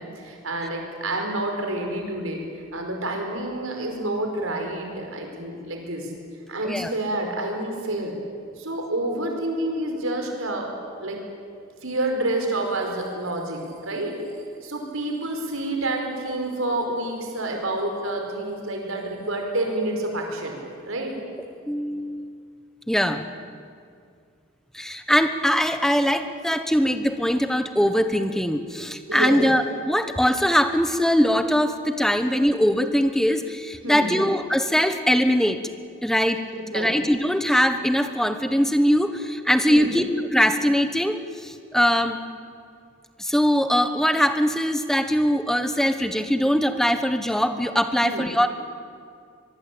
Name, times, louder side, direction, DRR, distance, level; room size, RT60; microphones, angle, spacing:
voice 1, 0.0-2.4 2.7-6.1 6.5-8.1 8.6-10.7 11.0-11.2 11.8-14.2 14.6-20.6 20.8-21.1 29.1-29.4 33.8-34.2 36.5-37.0 39.7-40.0 48.0-48.3, right 1 dB, 80° right, 3 dB, 5.0 m, -28 dB
voice 2, 21.7-22.3 22.9-23.2 24.7-35.6 36.0-36.4 36.7-40.1 40.3-42.2 43.2-48.5, equal, ahead, 8 dB, 1.1 m, -21 dB
24.0 x 22.5 x 8.7 m, 2.2 s
head